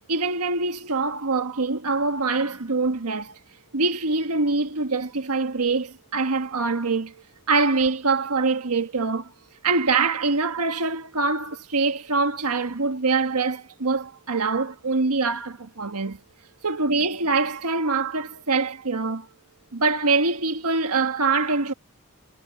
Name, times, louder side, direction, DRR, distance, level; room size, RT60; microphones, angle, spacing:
voice 1, 0.1-3.4 3.7-9.3 9.6-16.2 16.6-19.3 19.7-21.7, right 3 dB, 90° right, 1.5 m, -24 dB
head